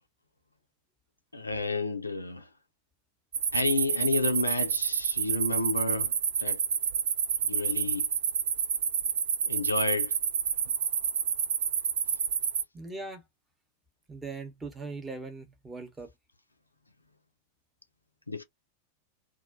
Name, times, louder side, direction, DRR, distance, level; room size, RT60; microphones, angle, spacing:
voice 1, 1.3-2.5 3.5-6.1 6.4-6.6 7.5-8.1 9.4-10.1 18.3-18.4, left 3 dB, 85° left, 0.3 m, -30 dB
sound 1, 3.3-12.6, right 7 dB, 60° right, 0.4 m, -29 dB
voice 2, 12.7-13.2 14.1-16.1, right 3 dB, 10° right, 0.8 m, -40 dB
2.3 x 2.2 x 2.4 m
figure-of-eight pair, 90°, 0 cm